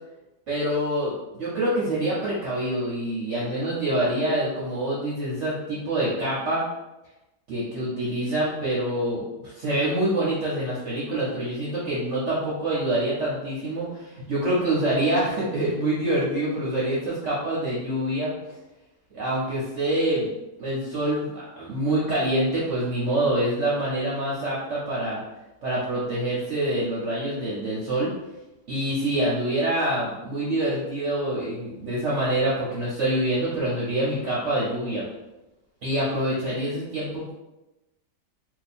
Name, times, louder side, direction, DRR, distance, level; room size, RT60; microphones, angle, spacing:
voice 1, 0.5-6.6 7.5-9.2 9.5-18.3 19.1-20.3 20.6-25.2 25.6-28.1 28.7-35.0 35.8-37.3, right 1 dB, 55° right, -7 dB, 0.9 m, -26 dB
2.7 x 2.4 x 4.2 m, 0.98 s
omnidirectional pair, 1.8 m